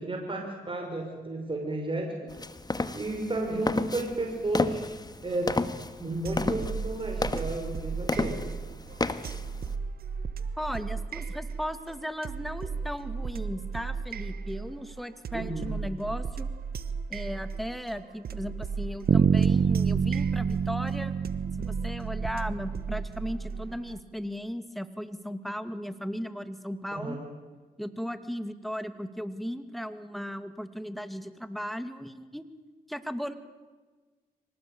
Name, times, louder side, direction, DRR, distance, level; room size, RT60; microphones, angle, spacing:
voice 1, 0.0-2.3 2.9-4.8 5.2-5.6 6.0-8.4 15.3-15.8 26.9-27.2, right 2 dB, 30° right, 2 dB, 6.0 m, -32 dB
sound 1, 2.3-9.7, left 2 dB, 25° left, 1.6 m, -33 dB
sound 2, 6.2-24.0, right 5 dB, 70° right, 1.3 m, -36 dB
voice 2, 10.6-16.5 17.1-21.2 21.6-27.2 27.8-32.4 32.9-33.4, equal, ahead, 10 dB, 2.4 m, -36 dB
Bass guitar, 19.1-23.0, right 7 dB, 50° right, 0.7 m, -26 dB
25.0 x 19.0 x 8.9 m, 1.3 s
cardioid pair, 55°, 16 cm